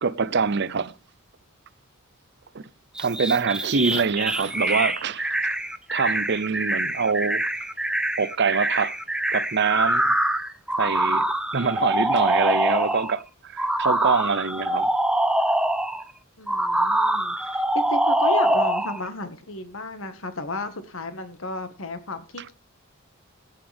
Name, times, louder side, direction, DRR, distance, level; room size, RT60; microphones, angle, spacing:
voice 1, 0.0-0.9 2.5-2.6 3.0-5.6 5.9-7.4 8.2-9.0 9.3-10.1 10.8-11.3 11.5-14.9, right 5 dB, 50° right, 0.7 m, -24 dB
sound 1, 3.0-13.1 13.6-16.0 16.5-19.0, right 1 dB, 5° right, 0.7 m, -24 dB
voice 2, 16.4-22.5, left 2 dB, 65° left, 1.7 m, -33 dB
16.0 x 9.2 x 3.5 m
head